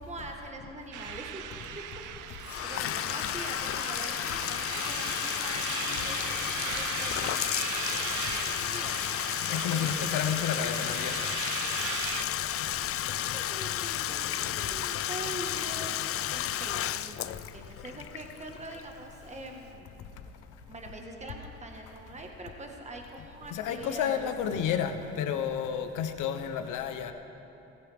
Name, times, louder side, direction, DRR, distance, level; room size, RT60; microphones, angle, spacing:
voice 1, 0.0-1.5 1.7-2.0 2.6-9.0 9.7-9.9 10.1-10.6 13.3-15.9 16.6-19.9 20.7-24.3, right 2 dB, 25° right, 2 dB, 1.5 m, -44 dB
sound 1, 0.9-12.2, right 9 dB, 80° right, 0.7 m, -38 dB
Bathtub (filling or washing), 2.4-19.1, left 11 dB, 50° left, 0.4 m, -32 dB
voice 2, 9.4-11.2 14.5-14.6 23.5-27.1, left 8 dB, 90° left, 8 dB, 0.9 m, -31 dB
19.0 x 15.0 x 3.6 m, 2.9 s
cardioid pair, 90°, 30 cm